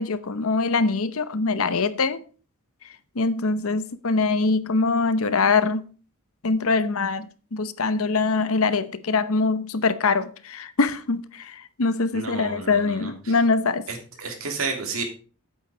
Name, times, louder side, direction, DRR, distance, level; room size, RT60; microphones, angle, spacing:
voice 1, 0.0-2.2 3.2-5.8 6.4-7.3 7.5-13.8, left 4 dB, 65° left, 0.8 m, -23 dB
voice 2, 12.1-13.4 13.9-15.0, right 4 dB, 65° right, 3.1 m, -32 dB
8.7 x 8.4 x 5.1 m
head